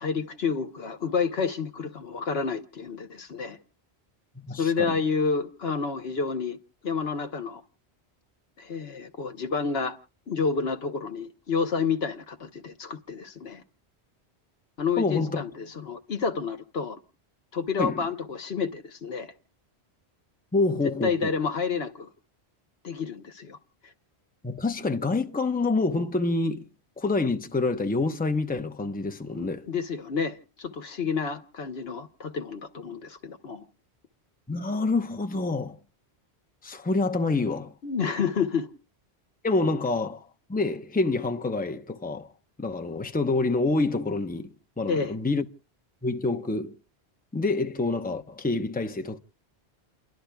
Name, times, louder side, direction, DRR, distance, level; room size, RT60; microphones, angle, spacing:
voice 1, 0.0-3.6 4.6-6.6 6.8-7.6 8.6-10.0 10.3-13.6 14.8-17.0 17.5-19.3 21.0-22.1 22.8-23.6 23.8-23.9 29.3-33.6 37.8-38.7 44.9-45.1, left 5 dB, 65° left, 1.2 m, -29 dB
voice 2, 4.4-5.0 15.0-15.4 17.8-18.0 20.5-21.3 24.4-26.7 27.0-29.7 34.5-35.8 36.6-37.7 39.4-40.2 40.5-42.3 42.6-45.4 46.0-46.8 47.3-49.2, left 3 dB, 10° left, 0.8 m, -27 dB
29.5 x 12.0 x 2.3 m
omnidirectional pair, 1.1 m